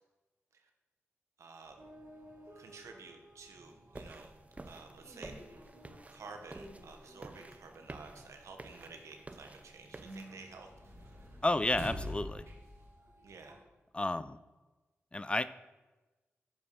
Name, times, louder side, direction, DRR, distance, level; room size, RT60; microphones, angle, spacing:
voice 1, 1.4-1.8 2.6-4.3 4.6-5.3 6.1-10.7 13.2-13.6, right 4 dB, 85° right, 4 dB, 1.0 m, -51 dB
sound 1, 1.6-13.6, equal, 65° right, 2.0 m, -50 dB
sound 2, 3.9-10.3, right 2 dB, 30° right, 0.6 m, -51 dB
voice 2, 11.4-12.4 13.9-14.4 15.1-15.5, left 2 dB, 20° left, 14 dB, 0.3 m, -31 dB
7.1 x 5.3 x 5.4 m, 1.2 s
cardioid pair, 55°, 5 cm